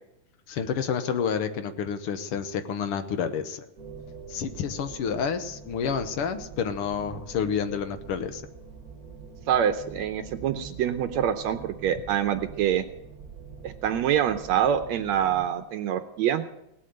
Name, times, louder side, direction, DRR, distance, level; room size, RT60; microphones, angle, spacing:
voice 1, 0.5-3.6 4.3-8.4, left 7 dB, 65° left, 9 dB, 1.5 m, -29 dB
sound 1, 3.8-15.5, right 5 dB, 30° right, 2.4 m, -45 dB
voice 2, 9.5-12.9 13.6-16.4, right 9 dB, 75° right, 9 dB, 1.9 m, -25 dB
18.0 x 8.4 x 7.7 m, 0.85 s
omnidirectional pair, 3.4 m